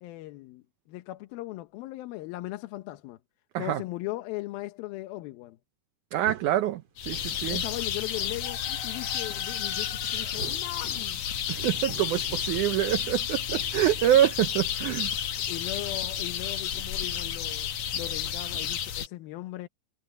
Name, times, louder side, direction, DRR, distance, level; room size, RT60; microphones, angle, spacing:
voice 1, 0.0-3.2 3.6-5.6 7.5-11.2 15.5-19.7, left 18 dB, 75° left, 2.6 m, -38 dB
voice 2, 6.1-7.6 11.5-15.1, right 12 dB, 85° right, 1.7 m, -26 dB
sound 1, 6.2-7.7 9.6-11.2 11.5-14.3 16.6-17.0 18.6-18.7, right 5 dB, 40° right, 2.9 m, -46 dB
sound 2, 7.0-19.1, left 9 dB, 60° left, 2.2 m, -31 dB
omnidirectional pair, 4.5 m